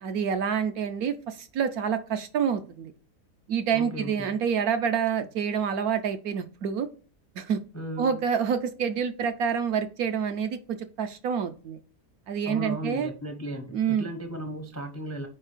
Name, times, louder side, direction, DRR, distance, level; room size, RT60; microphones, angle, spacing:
voice 1, 0.0-2.9 3.5-6.9 7.4-7.6 8.0-11.8 12.3-13.1 13.7-14.1, right 7 dB, 70° right, 1.1 m, -27 dB
voice 2, 3.7-4.4 7.7-8.2 12.4-15.3, right 1 dB, 15° left, 0.5 m, -36 dB
4.8 x 4.5 x 5.0 m
omnidirectional pair, 1.8 m